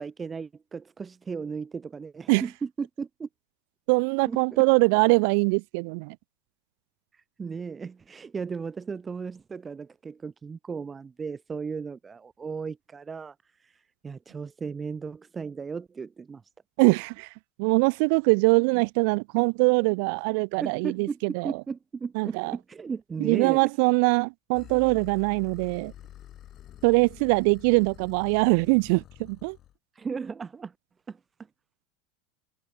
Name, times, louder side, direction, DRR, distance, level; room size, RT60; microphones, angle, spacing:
voice 1, 0.0-3.3 4.3-4.4 7.1-16.4 20.6-23.6 29.9-30.7 31.1-31.2, right 5 dB, 20° right, 1.2 m, -36 dB
voice 2, 3.9-6.2 16.8-17.3 17.6-21.5 22.2-22.5 23.2-25.9 26.8-29.6, right 34 dB, 60° right, 0.4 m, -23 dB
sound 1, 24.5-29.7, left 12 dB, 40° left, 7.6 m, -47 dB
hypercardioid pair, 80°, 0 cm